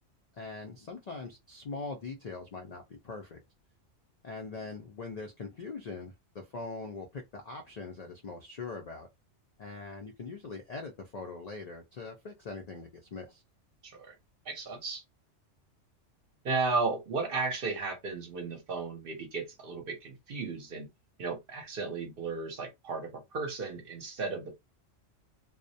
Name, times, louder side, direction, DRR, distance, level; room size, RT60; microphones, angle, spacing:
voice 1, 0.3-3.4 4.2-9.1 9.6-13.4, left 4 dB, 65° left, 0.4 m, -42 dB
voice 2, 13.8-14.1 14.5-15.0 16.4-20.9 21.2-24.5, right 4 dB, 55° right, 0.7 m, -34 dB
2.3 x 2.1 x 2.6 m
omnidirectional pair, 1.2 m